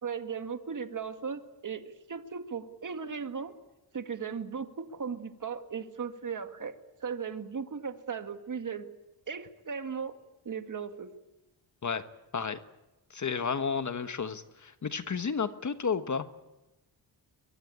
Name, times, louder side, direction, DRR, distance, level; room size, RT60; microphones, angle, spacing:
voice 1, 0.0-3.5 3.9-6.8 7.0-8.9 9.3-10.2 10.5-11.1, right 6 dB, 40° right, 8 dB, 2.0 m, -37 dB
voice 2, 13.1-16.3, left 6 dB, 40° left, 10 dB, 1.3 m, -32 dB
23.0 x 22.0 x 8.6 m, 1.0 s
cardioid pair, 110°, 45 cm